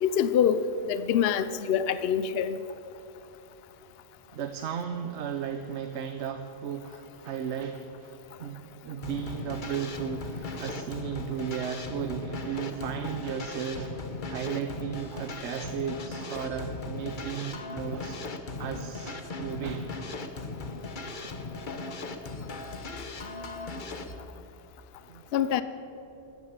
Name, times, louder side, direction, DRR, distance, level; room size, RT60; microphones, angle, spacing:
voice 1, 0.0-2.6 25.3-25.6, left 8 dB, 60° left, 0.8 m, -25 dB
voice 2, 4.3-18.2 18.5-20.3 25.1-25.3, right 7 dB, 70° right, 1.0 m, -35 dB
sound 1, 9.0-24.2, left 3 dB, 45° left, 1.1 m, -38 dB
12.5 x 12.0 x 8.0 m
omnidirectional pair, 1.2 m